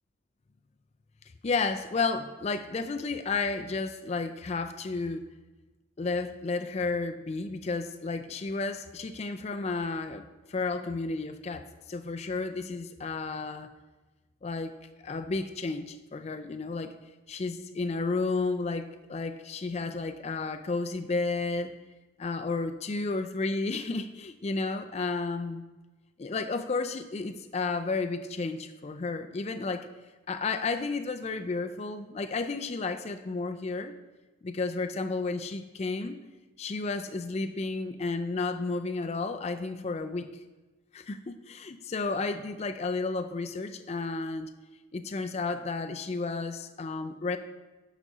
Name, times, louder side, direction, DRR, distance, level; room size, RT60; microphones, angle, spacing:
voice 1, 1.4-5.2 6.0-10.2 10.5-13.7 14.4-14.8 15.0-16.9 17.3-21.7 22.2-25.6 26.2-29.9 30.3-33.9 34.4-36.2 36.6-40.3 40.9-44.5 44.9-47.4, left 3 dB, 35° left, 7 dB, 0.4 m, -32 dB
10.5 x 4.1 x 5.5 m, 1.2 s
head